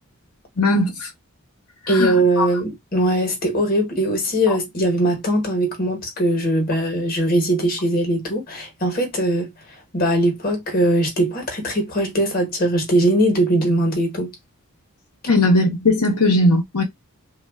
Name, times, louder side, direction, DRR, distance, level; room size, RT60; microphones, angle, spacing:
voice 1, 0.6-1.1 1.8-2.5 4.5-4.6 15.3-16.8, left 2 dB, 85° left, 0.8 m, -18 dB
voice 2, 1.9-9.5 9.9-14.3, right 1 dB, 40° left, 1.0 m, -20 dB
3.1 x 2.3 x 2.3 m
head